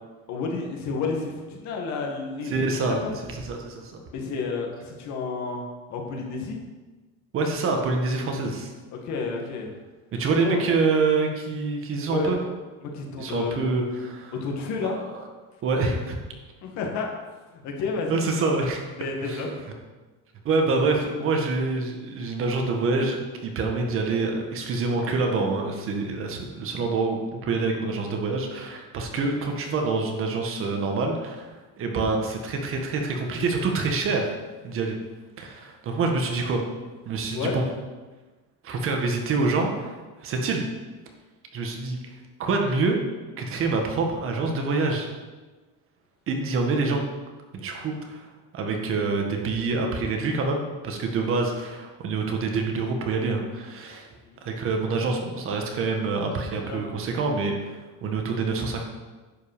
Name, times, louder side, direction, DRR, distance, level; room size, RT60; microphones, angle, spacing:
voice 1, 0.3-3.1 4.1-6.6 8.9-9.7 10.4-10.6 12.1-12.3 12.8-13.5 14.4-15.0 16.6-17.1 17.5-18.5 19.0-19.5 35.9-36.1 37.3-37.6 54.2-54.4 56.6-56.8, left 4 dB, 55° left, 1 dB, 2.1 m, -31 dB
voice 2, 2.5-3.9 7.3-8.7 10.1-12.4 13.2-14.3 15.1-15.2 15.6-16.2 18.1-18.8 19.2-19.5 20.4-31.5 31.8-34.3 34.6-35.0 35.4-36.6 37.0-37.6 38.6-39.9 40.2-40.6 41.5-42.0 42.4-43.0 43.4-45.1 46.3-47.0 47.5-48.2 48.5-54.1 54.4-58.8, right 3 dB, 40° right, 2 dB, 1.7 m, -26 dB
10.5 x 5.6 x 6.8 m, 1.3 s
cardioid pair, 160°, 33 cm